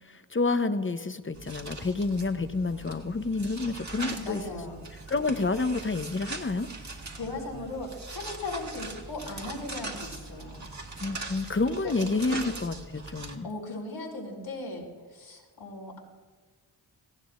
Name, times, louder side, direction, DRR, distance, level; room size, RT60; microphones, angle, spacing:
voice 1, 0.1-4.4 5.1-6.7 11.0-13.5, left 3 dB, 25° left, 10 dB, 0.9 m, -29 dB
sound 1, 1.3-13.4, right 3 dB, 35° right, 2.0 m, -41 dB
voice 2, 4.0-4.8 7.1-10.7 11.8-11.9 12.3-12.4 13.4-16.0, left 2 dB, 80° left, -4 dB, 4.3 m, -37 dB
18.5 x 15.5 x 2.6 m, 1.4 s
cardioid pair, 45°, 48 cm